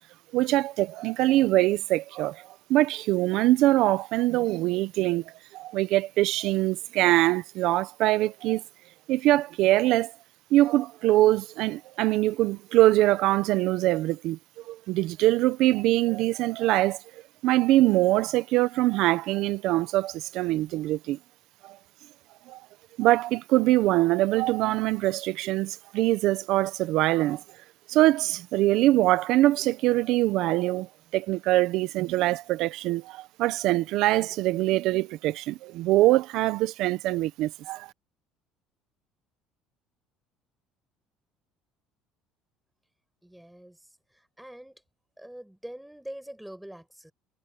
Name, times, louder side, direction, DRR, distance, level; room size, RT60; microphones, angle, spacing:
voice 1, 0.3-8.6 9.1-10.1 10.5-17.0 17.4-21.2 21.6-21.8 22.5-22.6 23.0-27.4 27.9-37.9, right 16 dB, 60° right, 0.8 m, -23 dB
voice 2, 43.2-44.8 45.2-47.1, right 1 dB, ahead, 6.1 m, -44 dB
cardioid pair, 160°, 0 cm